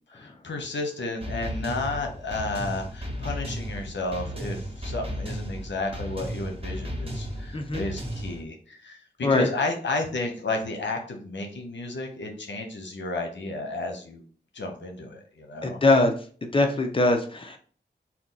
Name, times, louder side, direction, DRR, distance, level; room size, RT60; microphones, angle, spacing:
voice 1, 0.1-14.2 14.5-15.8, left 2 dB, 90° left, 3 dB, 0.8 m, -32 dB
sound 1, 1.2-8.4, equal, 30° right, 1.1 m, -34 dB
voice 2, 7.5-7.8 9.2-9.5 15.6-16.1 16.5-17.6, left 2 dB, 30° left, 4 dB, 0.7 m, -22 dB
4.3 x 2.3 x 3.9 m, 0.43 s
wide cardioid pair, 70°, 18 cm